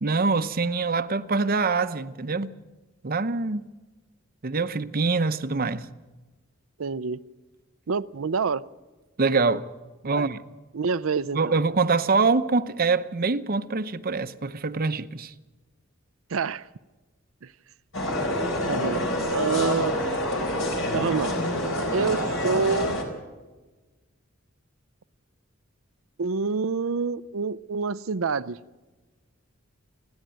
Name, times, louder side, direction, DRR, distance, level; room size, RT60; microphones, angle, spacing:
voice 1, 0.0-2.5 3.0-3.7 4.4-5.9 9.2-9.6 10.0-10.4 11.3-15.3, right 4 dB, 45° right, 0.8 m, -24 dB
voice 2, 6.8-7.2 7.9-8.6 10.1-10.3 10.7-11.6 16.3-16.6 18.7-19.0 19.3-20.0 20.9-21.3 21.9-23.0 26.2-28.6, right 5 dB, 75° right, 0.6 m, -27 dB
sound 1, 17.9-23.0, left 1 dB, 65° left, 4.1 m, -27 dB
29.0 x 10.5 x 9.0 m
head